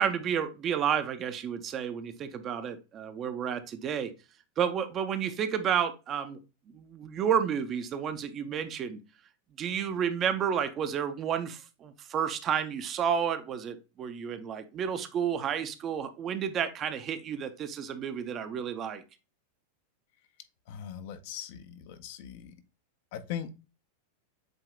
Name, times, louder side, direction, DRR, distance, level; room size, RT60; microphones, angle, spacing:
voice 1, 0.0-4.1 4.6-6.4 6.7-9.0 9.6-19.0, right 8 dB, 30° right, 9 dB, 0.6 m, -31 dB
voice 2, 20.7-22.6 23.1-23.7, left 9 dB, 50° left, 9 dB, 0.6 m, -40 dB
7.6 x 2.8 x 2.3 m, 0.29 s
figure-of-eight pair, 90°, 0 cm